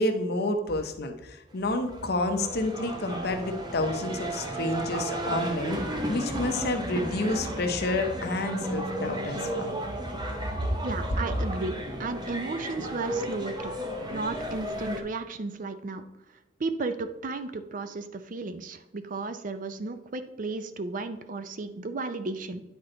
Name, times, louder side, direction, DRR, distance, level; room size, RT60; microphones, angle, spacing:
voice 1, 0.0-5.8 6.1-9.7 10.6-10.7, left 2 dB, 60° left, 6 dB, 0.8 m, -29 dB
sound 1, 1.5-15.0, right 1 dB, 25° right, 0.8 m, -34 dB
voice 2, 10.8-13.7 14.1-16.0 16.6-22.6, right 3 dB, 45° right, 10 dB, 0.5 m, -34 dB
9.5 x 4.4 x 3.9 m, 1.0 s
head